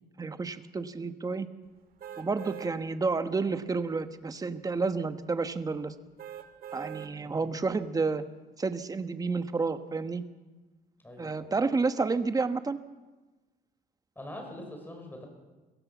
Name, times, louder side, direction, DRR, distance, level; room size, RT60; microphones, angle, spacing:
voice 1, 0.2-1.5 2.2-5.9 6.7-8.2 8.6-10.2 11.2-12.8, right 4 dB, 20° right, 10 dB, 1.2 m, -30 dB
sound 1, 2.0-2.7 3.3-3.4 6.2-7.1 7.7-7.8, right 10 dB, 60° right, 1.9 m, -42 dB
voice 2, 7.2-7.6 11.0-11.5 14.2-15.3, left 1 dB, 10° left, 4 dB, 6.0 m, -44 dB
23.5 x 16.0 x 7.2 m, 1.2 s
cardioid pair, 110°, 17 cm